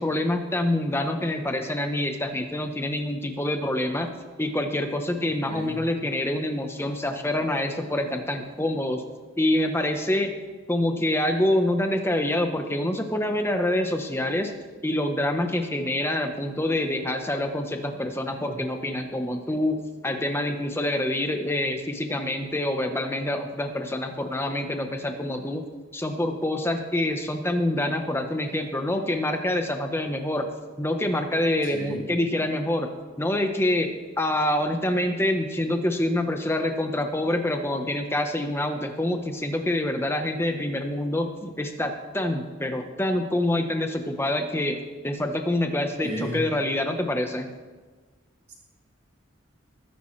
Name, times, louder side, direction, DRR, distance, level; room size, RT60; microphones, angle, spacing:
voice 1, 0.0-4.1 4.4-9.0 9.4-10.3 10.7-14.5 14.8-25.6 25.9-30.5 30.8-32.9 33.2-33.9 34.2-47.5, left 1 dB, 10° left, 5 dB, 1.0 m, -26 dB
voice 2, 5.5-5.8 17.9-18.0 18.3-18.6 31.6-32.0 46.0-46.4 48.5-48.6, right 1 dB, 30° right, -5 dB, 3.9 m, -35 dB
20.5 x 10.0 x 3.3 m, 1.4 s
head